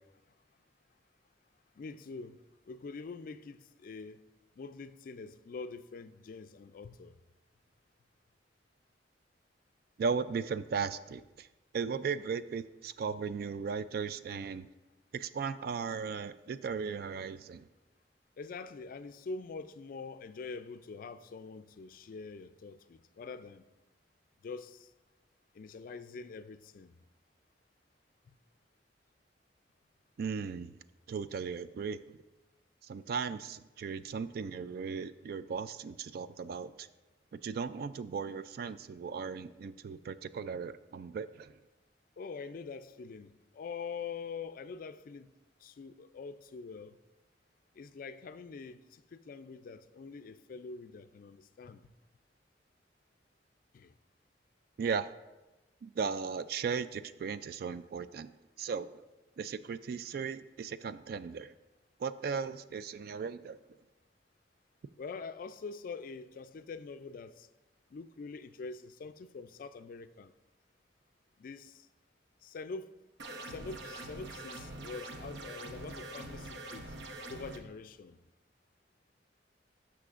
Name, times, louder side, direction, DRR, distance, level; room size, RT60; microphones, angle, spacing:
voice 1, 1.8-4.2 4.6-7.1 18.4-23.6 24.4-24.9 25.5-26.9 42.2-45.3 45.6-47.0 47.7-51.9 53.7-53.9 65.0-67.5 67.9-70.3 71.4-71.9 72.4-73.0 73.4-76.9 77.3-78.2, left 4 dB, 50° left, 0.3 m, -45 dB
voice 2, 10.0-11.5 11.7-14.7 15.1-17.7 30.2-30.8 31.1-32.2 32.8-36.9 37.3-41.5 54.8-55.1 55.8-58.3 58.6-58.9 59.4-61.5 62.0-63.6, right 5 dB, 60° right, 0.3 m, -37 dB
sound 1, 73.2-77.6, right 1 dB, 75° right, 0.8 m, -44 dB
13.0 x 5.9 x 2.5 m
head